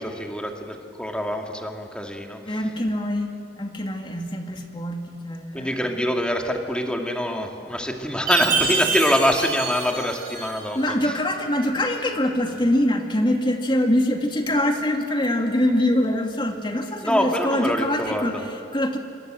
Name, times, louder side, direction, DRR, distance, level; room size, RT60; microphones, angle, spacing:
voice 1, 0.0-2.6 5.5-10.8 17.0-18.4, equal, 5° left, 2 dB, 2.3 m, -25 dB
voice 2, 2.5-3.3 3.6-5.8 10.7-19.0, left 1 dB, 30° left, 3 dB, 2.6 m, -24 dB
Chime, 8.3-10.8, right 5 dB, 55° right, 6.5 m, -26 dB
27.0 x 25.0 x 7.8 m, 2.5 s
head